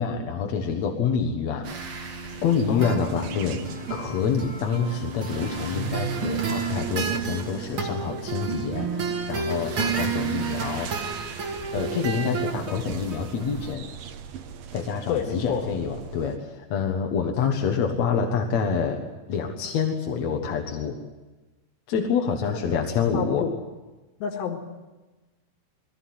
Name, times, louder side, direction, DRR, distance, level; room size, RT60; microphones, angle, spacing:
voice 1, 0.0-1.7 2.0-11.1 11.7-13.9 14.7-19.0 19.3-21.0 21.9-23.5, left 6 dB, 60° left, 2 dB, 2.0 m, -27 dB
sound 1, 1.6-13.7, right 5 dB, 50° right, 1.5 m, -31 dB
sound 2, 2.3-16.4, right 8 dB, 70° right, 2.5 m, -43 dB
voice 2, 2.7-3.2 15.1-15.7 23.1-23.5 24.2-24.6, left 8 dB, 80° left, 4 dB, 3.9 m, -29 dB
21.5 x 16.0 x 9.4 m, 1.2 s
omnidirectional pair, 4.9 m